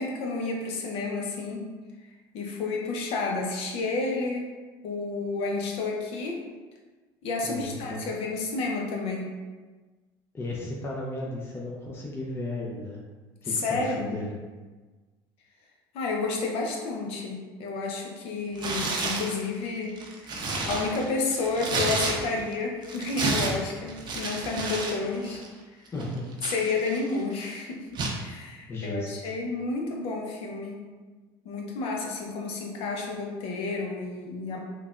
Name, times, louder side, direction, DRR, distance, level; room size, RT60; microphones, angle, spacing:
voice 1, 0.0-1.7 2.3-4.5 4.8-6.4 7.2-9.3 13.4-14.2 15.9-19.9 20.2-20.3 20.7-25.4 26.4-27.9 28.2-30.8 31.4-34.6, left 3 dB, 60° left, 0 dB, 0.6 m, -30 dB
voice 2, 7.4-8.1 10.3-13.0 13.4-14.4 25.9-26.3 28.7-29.3, left 2 dB, 20° left, -3 dB, 0.5 m, -35 dB
Tearing, 18.6-19.4 19.9-22.5 22.8-25.0 25.2-25.5 26.0-27.2 28.0-28.2, right 3 dB, 40° right, 0.5 m, -30 dB
3.2 x 2.2 x 2.4 m, 1.3 s
supercardioid pair, 85°, 11 cm